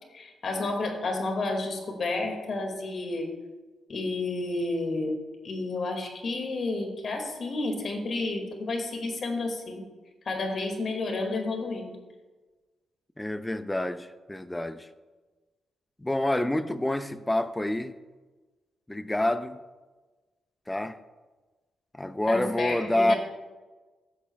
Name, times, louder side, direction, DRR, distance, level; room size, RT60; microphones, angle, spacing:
voice 1, 0.1-3.4 3.9-9.9 10.3-12.0 22.3-23.2, left 2 dB, 55° left, 2.0 m, -31 dB
voice 2, 13.2-14.9 16.0-17.9 18.9-19.6 20.7-21.0 21.9-23.1, left 1 dB, 10° left, 0.6 m, -27 dB
14.5 x 11.0 x 2.3 m
cardioid pair, 90°, 0 cm